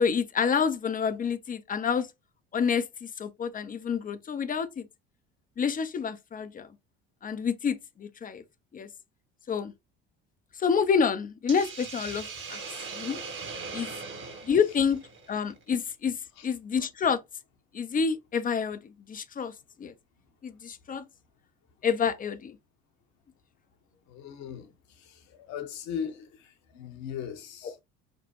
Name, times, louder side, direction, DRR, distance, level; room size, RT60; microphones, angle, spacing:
voice 1, 0.0-2.1 2.5-4.9 5.6-6.7 7.2-8.4 8.7-8.9 9.5-9.7 10.6-12.6 12.9-13.2 13.7-13.9 14.4-15.0 15.3-16.2 16.4-17.2 17.7-19.5 19.8-19.9 20.4-21.0 21.8-22.6, left 6 dB, 25° left, 0.6 m, -28 dB
Hiss, 11.5-15.8, right 4 dB, 40° right, 1.1 m, -40 dB
voice 2, 20.2-20.6 21.7-21.9 24.1-27.8, left 8 dB, 60° left, 1.2 m, -39 dB
5.1 x 2.2 x 3.0 m
hypercardioid pair, 70°, 31 cm